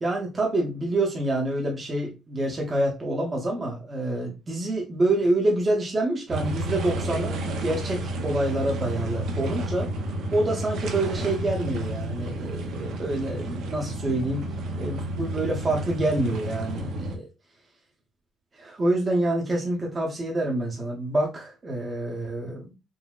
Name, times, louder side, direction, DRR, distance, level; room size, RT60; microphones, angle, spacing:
voice 1, 0.0-9.9 10.3-14.5 14.8-17.3 18.5-22.7, right 2 dB, 30° right, -1 dB, 0.7 m, -27 dB
sound 1, 6.3-17.2, right 1 dB, 75° right, 0.6 m, -31 dB
3.8 x 2.0 x 2.3 m, 0.27 s
cardioid pair, 100°, 0 cm